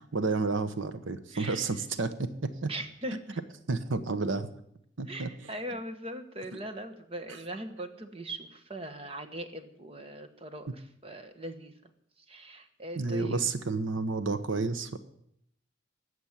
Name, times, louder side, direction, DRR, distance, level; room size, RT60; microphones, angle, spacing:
voice 1, 0.1-2.7 3.7-4.5 5.0-5.3 13.0-15.0, right 3 dB, 80° right, 11 dB, 1.0 m, -30 dB
voice 2, 1.3-1.7 2.7-3.4 5.1-13.5, right 1 dB, 30° right, 9 dB, 1.2 m, -40 dB
20.0 x 8.0 x 7.4 m, 0.73 s
head